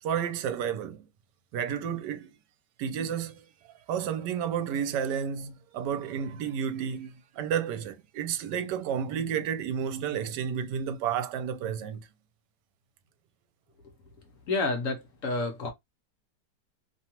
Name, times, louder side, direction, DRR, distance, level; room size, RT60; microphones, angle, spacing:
voice 1, 0.0-1.1 1.5-2.3 2.8-3.5 3.9-12.0, right 8 dB, 80° right, 1.2 m, -31 dB
voice 2, 14.5-15.7, left 3 dB, 60° left, 0.9 m, -29 dB
2.9 x 2.3 x 2.8 m
omnidirectional pair, 1.9 m